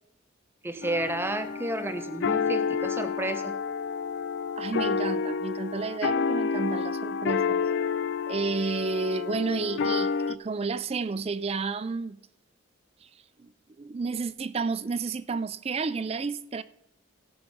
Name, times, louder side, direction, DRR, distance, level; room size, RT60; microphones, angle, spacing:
voice 1, 0.6-3.6, right 1 dB, 10° right, 0.7 m, -31 dB
sound 1, 0.8-10.4, left 5 dB, 60° left, 0.4 m, -29 dB
voice 2, 4.6-7.6 8.3-12.2 13.0-13.1 13.4-13.5 13.8-16.6, right 4 dB, 30° right, 0.4 m, -31 dB
16.5 x 5.9 x 5.3 m
head